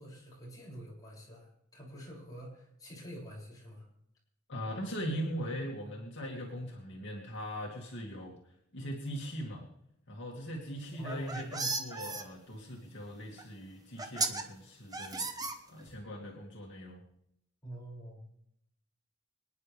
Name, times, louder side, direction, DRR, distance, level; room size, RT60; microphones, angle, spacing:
voice 1, 0.0-3.9 11.0-11.5 17.6-18.2, right 1 dB, 20° left, -5 dB, 6.7 m, -46 dB
voice 2, 4.5-8.4 8.7-9.7 10.1-17.0, equal, 60° left, -2 dB, 2.5 m, -40 dB
sound 1, 10.9-12.2 13.4-13.5 14.0-14.4 14.9-16.0, right 3 dB, 20° right, 1.2 m, -35 dB
25.5 x 10.0 x 3.5 m, 0.72 s
head